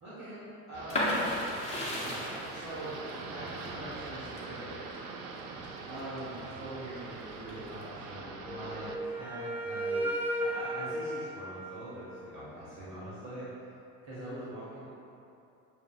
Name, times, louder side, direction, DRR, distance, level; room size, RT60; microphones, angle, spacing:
voice 1, 0.0-1.3 1.6-4.9 5.9-10.1 10.4-13.5 14.0-14.9, right 1 dB, 40° right, -10 dB, 1.4 m, -43 dB
sound 1, 0.7-9.0, right 4 dB, 70° right, 0.5 m, -43 dB
sound 2, 0.9-6.5 7.0-7.8, left 1 dB, 15° left, 1.2 m, -35 dB
Wind instrument woodwind instrument, 8.4-12.3, right 1 dB, 5° right, 0.3 m, -35 dB
6.9 x 2.6 x 2.3 m, 2.8 s
figure-of-eight pair, 65°, 45 cm